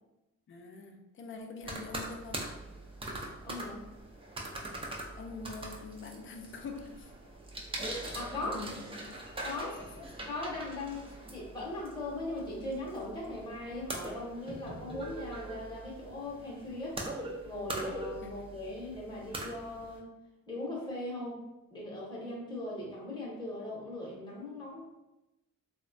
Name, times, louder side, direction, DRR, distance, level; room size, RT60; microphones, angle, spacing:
voice 1, 0.5-2.5 5.2-7.1 8.4-9.1 9.5-10.1, left 3 dB, 40° left, 4 dB, 0.4 m, -44 dB
sound 1, 1.6-20.0, right 1 dB, 20° right, 0.4 m, -42 dB
voice 2, 3.4-3.8 7.8-8.7 9.4-9.7 10.3-11.0 11.3-17.0 17.4-20.1 20.5-21.4 21.7-24.9, left 2 dB, 15° left, -5 dB, 0.8 m, -39 dB
3.0 x 2.1 x 2.5 m, 0.97 s
cardioid pair, 100°, 30 cm